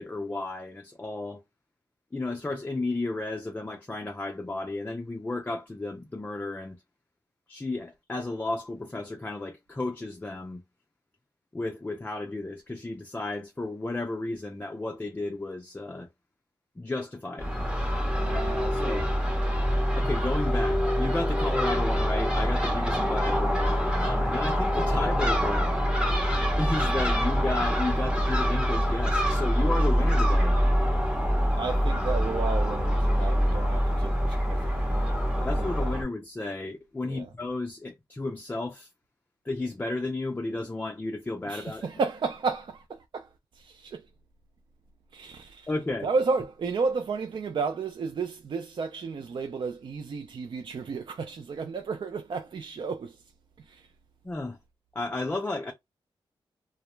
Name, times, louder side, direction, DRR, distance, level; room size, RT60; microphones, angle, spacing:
voice 1, 0.0-1.4 2.1-6.8 7.5-10.6 11.5-16.1 16.8-17.5 18.2-19.1 19.9-25.7 26.6-30.6 35.4-38.9 39.5-41.9 45.7-46.1 54.2-54.6 54.9-55.7, left 2 dB, 20° left, 0.4 m, -33 dB
Crow / Gull seagull, 17.4-36.0, equal, 10° right, 0.7 m, -25 dB
voice 2, 18.2-19.1 31.6-35.1 35.4-36.0 37.0-37.3 41.5-43.3 43.5-44.0 45.1-45.7 46.0-53.2 53.6-53.9, right 4 dB, 60° right, 0.4 m, -33 dB
2.2 x 2.0 x 3.0 m
wide cardioid pair, 80°, 9 cm